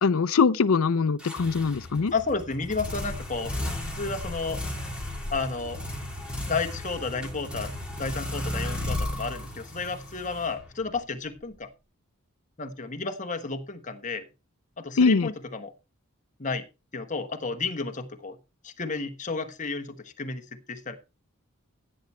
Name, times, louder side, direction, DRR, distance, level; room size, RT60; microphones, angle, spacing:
voice 1, 0.0-2.1 15.0-15.3, left 5 dB, 75° left, 0.5 m, -22 dB
sound 1, 1.2-11.0, left 1 dB, 5° right, 2.9 m, -34 dB
voice 2, 2.1-3.5 3.9-4.6 5.3-5.8 6.5-7.7 8.0-11.7 12.6-14.2 14.8-15.7 16.4-16.6 16.9-18.4 18.6-21.0, left 4 dB, 35° left, 1.2 m, -32 dB
15.5 x 8.6 x 3.2 m
head